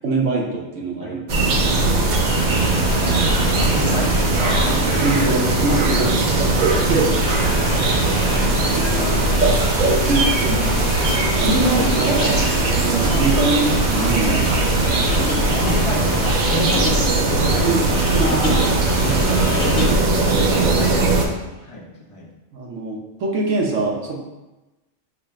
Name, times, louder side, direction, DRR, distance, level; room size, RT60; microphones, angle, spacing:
voice 1, 0.0-1.7 5.0-7.2 10.1-10.7 11.4-14.4 17.4-17.8 18.1-18.3 18.6-18.7 19.0-19.2 20.2-20.9 22.5-24.2, right 2 dB, 75° right, -2 dB, 1.2 m, -24 dB
sound 1, 1.3-21.3, right 2 dB, 50° right, 0.5 m, -19 dB
sound 2, 2.2-20.0, left 2 dB, 60° left, 1.1 m, -32 dB
voice 2, 2.9-6.6 7.5-8.1 8.5-9.6 10.0-10.6 13.4-13.6 15.3-17.8 18.2-20.2 20.5-21.3 21.6-22.3, left 2 dB, 40° left, -3 dB, 0.5 m, -31 dB
sound 3, 15.1-20.2, left 3 dB, 85° left, 1.2 m, -29 dB
4.8 x 2.1 x 4.7 m, 1.1 s
omnidirectional pair, 1.3 m